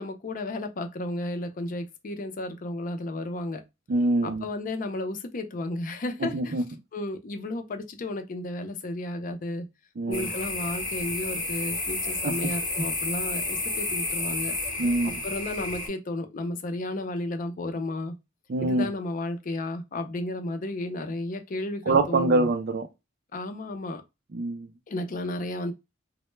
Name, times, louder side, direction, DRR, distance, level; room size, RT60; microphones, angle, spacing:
voice 1, 0.0-3.6 4.2-6.5 6.9-9.7 10.1-14.6 15.0-18.1 18.6-22.5 23.3-24.0 24.9-25.7, left 2 dB, 45° left, 0.4 m, -33 dB
voice 2, 3.9-4.4 6.2-6.6 10.0-10.3 12.2-12.3 14.8-15.2 18.5-18.9 21.9-22.9 24.3-24.7, right 2 dB, 55° right, 0.4 m, -25 dB
sound 1, 10.1-15.9, left 2 dB, 20° left, 0.9 m, -31 dB
2.1 x 2.0 x 3.1 m
head